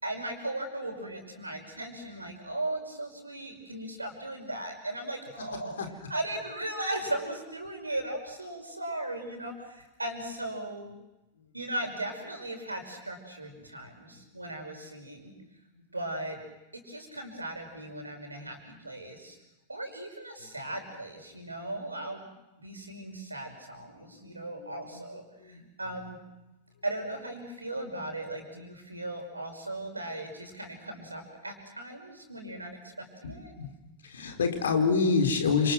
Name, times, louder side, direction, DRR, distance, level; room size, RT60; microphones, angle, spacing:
voice 1, 0.0-5.8 6.1-10.9 11.5-15.3 15.9-16.4 16.7-19.4 19.7-22.3 22.6-26.2 26.8-33.5, right 1 dB, 80° right, 5 dB, 5.8 m, -37 dB
voice 2, 24.2-25.6 33.2-33.3 33.6-33.7 34.0-35.7, left 5 dB, 65° left, 6 dB, 4.5 m, -28 dB
29.0 x 28.0 x 6.3 m, 0.97 s
figure-of-eight pair, 90°, 0 cm